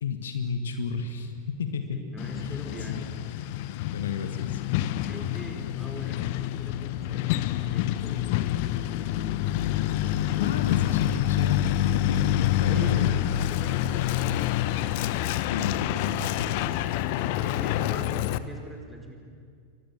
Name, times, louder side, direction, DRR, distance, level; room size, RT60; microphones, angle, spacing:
voice 1, 0.0-2.1 2.4-2.5 2.9-3.1 3.9-4.6 10.4-13.1 15.5-16.7, left 6 dB, 65° left, 8 dB, 1.8 m, -31 dB
voice 2, 1.9-3.1 5.0-9.5 9.9-10.6 12.7-14.5 17.4-19.2, right 1 dB, 5° right, 2 dB, 4.9 m, -43 dB
Truck, 2.2-18.4, left 13 dB, 50° left, 0.9 m, -27 dB
29.5 x 24.5 x 7.2 m, 2.2 s
figure-of-eight pair, 90°, 0 cm